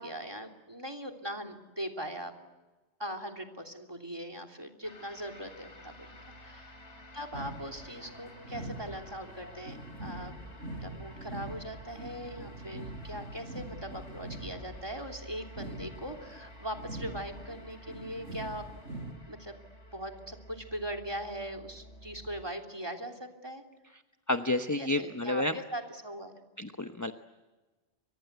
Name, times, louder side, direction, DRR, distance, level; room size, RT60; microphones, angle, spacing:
voice 1, 0.0-2.3 3.0-6.7 7.1-10.4 10.7-18.6 19.3-19.5 19.9-23.6 24.8-26.3, equal, 20° right, 7 dB, 3.2 m, -40 dB
sound 1, 4.8-22.4, equal, 75° left, 3.8 m, -51 dB
sound 2, 7.3-19.1, right 1 dB, 85° right, 6.1 m, -44 dB
voice 2, 24.3-25.5 26.6-27.1, left 2 dB, 15° left, 7 dB, 1.0 m, -30 dB
29.5 x 24.5 x 8.2 m, 1.2 s
omnidirectional pair, 1.2 m